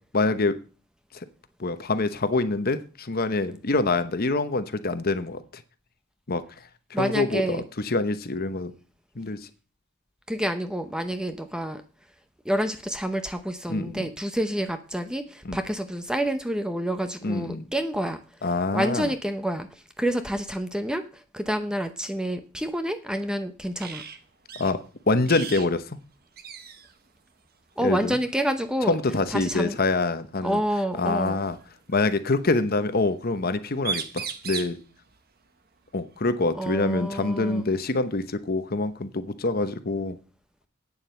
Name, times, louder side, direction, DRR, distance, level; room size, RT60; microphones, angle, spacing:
voice 1, 0.1-0.6 1.1-1.3 1.6-5.4 6.3-6.4 6.9-8.7 9.2-9.4 13.7-14.1 15.4-15.6 17.2-17.7 18.4-19.1 24.6-24.8 25.1-26.0 27.8-28.2 28.9-30.6 31.0-31.6 31.9-34.8 35.9-40.2, left 3 dB, 45° left, 11 dB, 0.9 m, -25 dB
voice 2, 6.9-7.6 10.3-11.8 12.4-18.2 18.7-19.7 20.0-21.0 21.3-24.0 27.8-29.0 29.3-29.8 30.4-31.4 36.5-37.7, right 1 dB, 5° right, 9 dB, 0.7 m, -28 dB
sound 1, 23.8-24.2 24.5-24.7 25.2-25.7 26.0-26.1 26.4-26.9 28.1-28.3 30.0-30.1 31.3-32.1 33.5-33.6 33.8-34.8 36.7-36.8 37.3-38.3, right 7 dB, 45° right, 1.1 m, -36 dB
9.0 x 7.5 x 6.9 m, 0.37 s
head